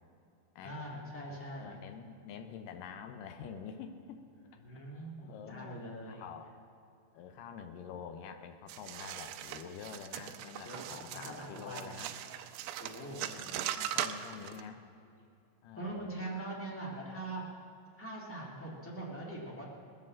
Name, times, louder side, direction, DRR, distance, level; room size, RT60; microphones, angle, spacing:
voice 1, 0.6-1.8 4.6-6.2 10.6-12.0 12.8-13.2 15.7-17.4 18.0-19.6, right 1 dB, 10° left, -5 dB, 0.8 m, -42 dB
voice 2, 1.3-4.2 4.7-6.5 7.1-12.1 13.0-14.8 15.6-16.2, left 7 dB, 80° left, 6 dB, 1.9 m, -47 dB
sound 1, 8.7-14.6, right 11 dB, 85° right, 2.3 m, -40 dB
20.0 x 7.5 x 7.5 m, 2.5 s
omnidirectional pair, 4.8 m